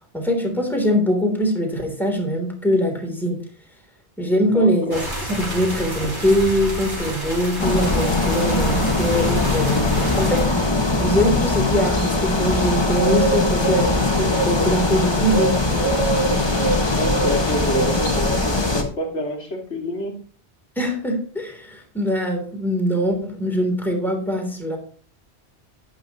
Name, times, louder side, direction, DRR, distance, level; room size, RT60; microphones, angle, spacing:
voice 1, 0.1-3.4 4.2-10.6 11.0-15.9 20.7-24.8, equal, ahead, 1 dB, 3.3 m, -22 dB
voice 2, 4.5-5.0 17.0-20.1, left 1 dB, 90° left, 1 dB, 2.8 m, -28 dB
sound 1, 4.9-10.4, right 1 dB, 20° right, 4.6 m, -29 dB
sound 2, 7.6-18.8, left 2 dB, 25° left, 1.8 m, -20 dB
11.5 x 10.5 x 3.1 m, 0.43 s
omnidirectional pair, 1.1 m